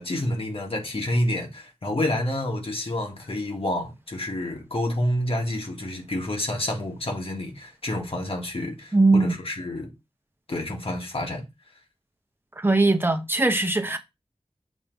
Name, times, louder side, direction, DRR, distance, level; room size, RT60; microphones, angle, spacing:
voice 1, 0.0-9.9 10.5-11.5, left 1 dB, 65° left, 1.8 m, -28 dB
voice 2, 8.9-9.4 12.6-14.0, right 2 dB, 20° right, 1.0 m, -20 dB
7.0 x 3.0 x 5.3 m
wide cardioid pair, 70°, 11 cm